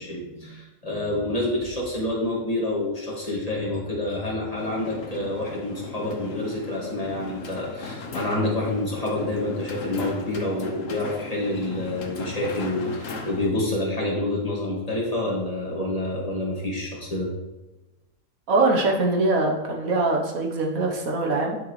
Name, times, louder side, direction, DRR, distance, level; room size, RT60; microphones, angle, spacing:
voice 1, 0.0-17.3, left 1 dB, 25° left, -5 dB, 2.1 m, -28 dB
sound 1, 4.5-13.5, left 3 dB, 65° left, 1.3 m, -38 dB
voice 2, 18.5-21.6, right 2 dB, 75° right, 1 dB, 1.6 m, -23 dB
10.5 x 6.2 x 3.3 m, 1.1 s
omnidirectional pair, 1.5 m